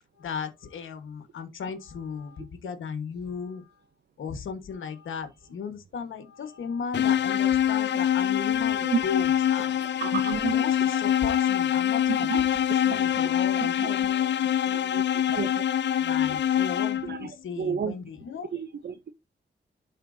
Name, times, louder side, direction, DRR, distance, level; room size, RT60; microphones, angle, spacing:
voice 1, 0.2-3.7 4.2-10.0 10.2-12.3 12.8-14.9 16.0-18.5, left 6 dB, 85° left, 1.3 m, -36 dB
sound 1, 6.9-17.3, left 10 dB, 65° left, 0.4 m, -25 dB
voice 2, 9.8-10.6 12.1-12.4 13.2-13.9 14.6-15.0 15.3-15.6 17.0-17.3 17.6-17.9 18.5-19.1, right 7 dB, 55° right, 0.7 m, -32 dB
11.5 x 4.5 x 2.6 m
cardioid pair, 45°, 20 cm